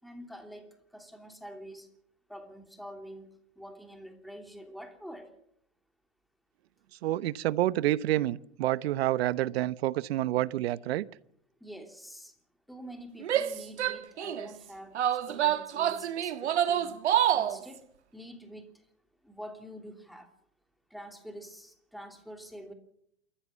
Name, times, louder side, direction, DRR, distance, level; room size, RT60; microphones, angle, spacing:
voice 1, 0.0-1.9 2.3-5.3 11.6-12.3 12.7-17.0 17.3-17.8 18.1-18.9 19.2-20.3 20.9-22.7, equal, ahead, 5 dB, 3.0 m, -46 dB
voice 2, 7.0-11.1, right 14 dB, 65° right, 18 dB, 1.0 m, -28 dB
Female speech woman speaking / Yell, 13.2-14.5 15.0-17.6, right 10 dB, 80° right, 1.7 m, -27 dB
27.5 x 14.5 x 7.4 m, 0.71 s
hypercardioid pair, 120°, 33 cm